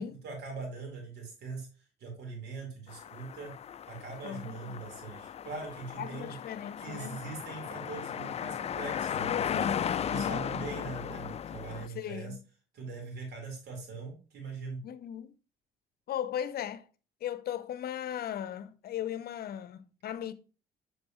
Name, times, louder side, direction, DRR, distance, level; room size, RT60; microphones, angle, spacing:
voice 1, 0.2-3.5 3.9-6.3 6.8-9.7 10.1-12.4 12.7-14.8, right 4 dB, 70° right, 4.0 m, -42 dB
sound 1, 2.9-11.9, left 9 dB, 35° left, 0.4 m, -36 dB
voice 2, 4.2-4.8 6.0-7.2 9.5-10.5 11.9-12.4 14.8-15.3 16.1-16.9 17.2-20.3, left 9 dB, 60° left, 0.7 m, -37 dB
7.7 x 6.5 x 3.0 m
supercardioid pair, 75°, 18 cm